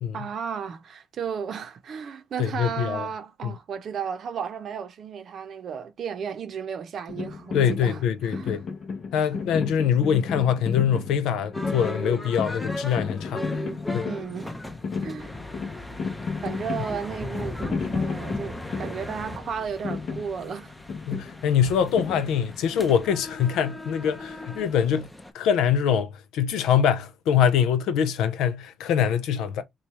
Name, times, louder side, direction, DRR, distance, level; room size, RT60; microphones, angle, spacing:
voice 1, 0.1-8.6 9.1-9.3 14.0-14.5 15.0-15.4 16.4-20.7, right 7 dB, 60° right, 0.7 m, -34 dB
voice 2, 2.4-3.1 3.4-3.5 7.5-8.6 9.1-13.4 13.9-14.1 21.1-25.1 25.3-29.6, left 8 dB, 90° left, 0.5 m, -24 dB
sound 1, 7.1-22.8, left 5 dB, 55° left, 0.7 m, -33 dB
sound 2, 11.5-25.3, left 1 dB, 10° left, 0.6 m, -37 dB
3.1 x 2.3 x 4.1 m
cardioid pair, 90°, 0 cm